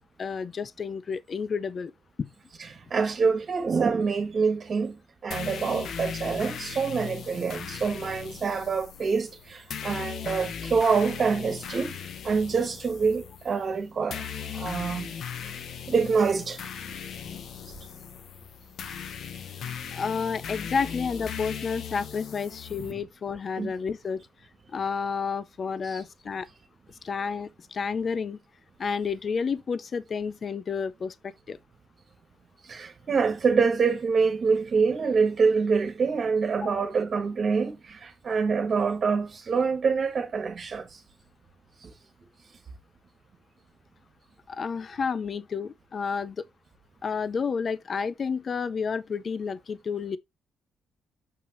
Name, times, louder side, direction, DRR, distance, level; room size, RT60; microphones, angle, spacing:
voice 1, 0.2-1.9 2.2-2.3 19.9-24.2 24.7-26.5 27.0-28.4 28.8-31.6 36.6-36.8 44.5-46.4 47.0-50.2, left 5 dB, 45° left, 0.6 m, -30 dB
voice 2, 2.6-5.0 5.2-15.1 15.4-15.5 15.9-16.7 23.6-23.7 25.8-26.0 32.6-41.0 41.8-41.9, right 5 dB, 45° right, 1.7 m, -26 dB
sound 1, 5.3-22.9, left 7 dB, 65° left, 1.0 m, -38 dB
6.9 x 5.9 x 2.9 m
cardioid pair, 90°, 0 cm